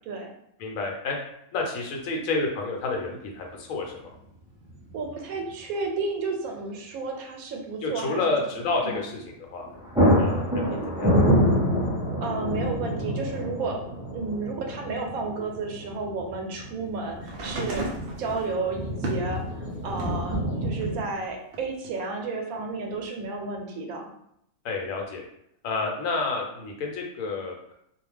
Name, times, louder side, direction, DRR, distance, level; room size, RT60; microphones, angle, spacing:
voice 1, 0.6-1.2 1.5-4.1 7.8-9.7 10.2-11.2 24.6-25.2 25.6-27.7, left 3 dB, 80° left, 1 dB, 1.0 m, -30 dB
sound 1, 3.0-3.1 4.7-5.1 5.4-5.5 9.2-9.4 9.6-21.0, equal, 5° right, 0.7 m, -27 dB
voice 2, 4.9-8.2 8.8-8.9 12.2-13.8 14.1-17.9 18.2-24.1, right 3 dB, 85° right, 2 dB, 1.0 m, -32 dB
sound 2, 17.2-20.3 20.8-21.9 22.9-23.0, right 2 dB, 60° right, 0.6 m, -36 dB
2.4 x 2.1 x 3.2 m, 0.74 s
omnidirectional pair, 1.4 m